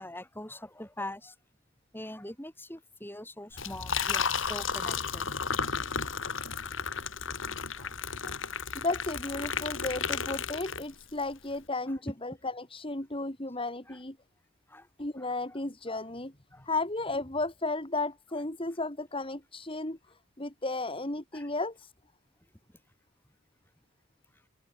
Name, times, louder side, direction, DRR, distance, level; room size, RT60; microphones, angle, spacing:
voice 1, 0.0-1.3 1.9-5.3 7.8-7.9 8.2-8.4 13.9-14.0 14.7-14.9 15.2-15.3 16.5-16.7 21.3-21.5, left 1 dB, 10° left, 6.8 m, -43 dB
Liquid, 3.5-11.2, left 6 dB, 70° left, 3.4 m, -33 dB
voice 2, 8.7-14.2 15.0-16.3 16.6-20.0 20.4-21.9, left 2 dB, 25° left, 2.8 m, -34 dB
open air
head